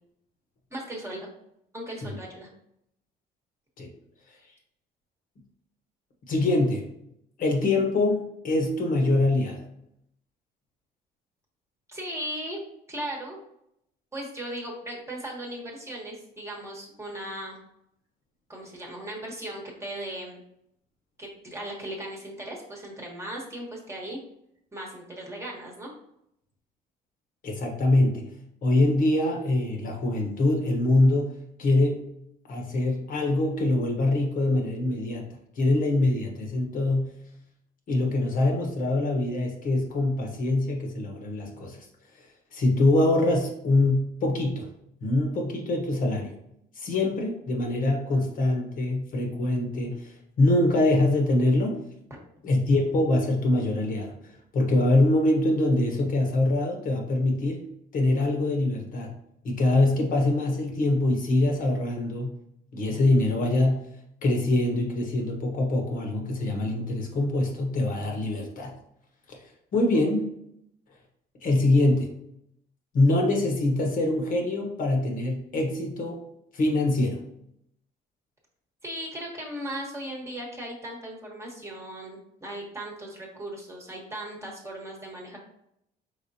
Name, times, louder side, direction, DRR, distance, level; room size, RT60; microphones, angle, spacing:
voice 1, 0.7-1.3 1.7-2.5 11.9-12.6 12.9-13.4 14.1-17.6 18.5-20.4 21.2-24.2 24.7-25.9 78.8-85.4, right 1 dB, 15° right, -1 dB, 1.2 m, -37 dB
voice 2, 6.3-6.8 7.4-9.6 27.4-28.2 28.6-32.1 32.5-35.2 35.6-37.2 37.9-41.8 42.5-44.7 45.0-46.3 46.8-51.8 52.4-54.1 54.5-57.7 57.9-59.1 59.4-62.3 62.7-63.8 64.2-68.7 69.3-69.4 69.7-70.3 71.4-72.1 72.9-76.2 76.5-77.2, left 2 dB, 55° left, 1 dB, 1.0 m, -24 dB
5.0 x 3.6 x 2.7 m, 0.76 s
cardioid pair, 110°, 17 cm